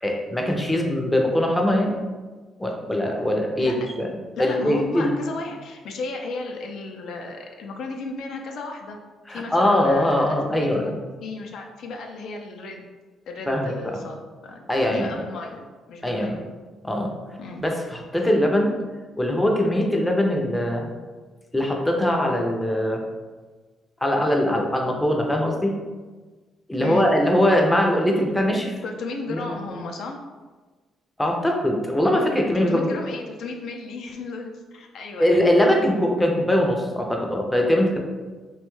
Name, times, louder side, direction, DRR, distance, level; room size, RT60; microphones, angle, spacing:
voice 1, 0.0-2.0 2.6-4.1 4.4-5.1 9.3-10.9 13.5-13.9 14.7-15.1 16.0-16.4 16.8-17.1 17.6-18.7 19.2-20.9 21.5-23.0 24.0-25.7 26.7-28.8 29.3-29.4 31.2-32.9 35.2-38.0, left 1 dB, 10° left, 1 dB, 0.5 m, -21 dB
voice 2, 4.4-9.0 9.3-12.9 13.3-14.2 14.4-16.4 17.4-17.6 26.8-27.1 28.8-30.2 32.5-35.5, left 3 dB, 75° left, 2 dB, 0.4 m, -34 dB
3.0 x 2.2 x 3.0 m, 1.3 s
cardioid pair, 90°, 0 cm